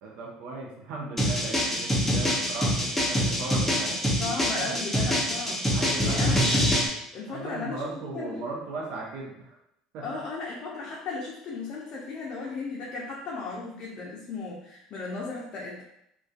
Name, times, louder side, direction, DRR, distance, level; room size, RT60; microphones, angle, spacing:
voice 1, 0.0-4.8 5.7-6.4 7.3-9.6 9.9-10.2, right 3 dB, 65° right, -2 dB, 0.5 m, -37 dB
sound 1, 1.2-6.9, equal, 10° left, 0.6 m, -25 dB
voice 2, 4.2-5.7 6.0-6.7 7.1-7.9 8.1-8.4 10.0-15.8, left 4 dB, 50° left, -3 dB, 0.5 m, -35 dB
2.4 x 2.2 x 2.3 m, 0.76 s
hypercardioid pair, 75°, 2 cm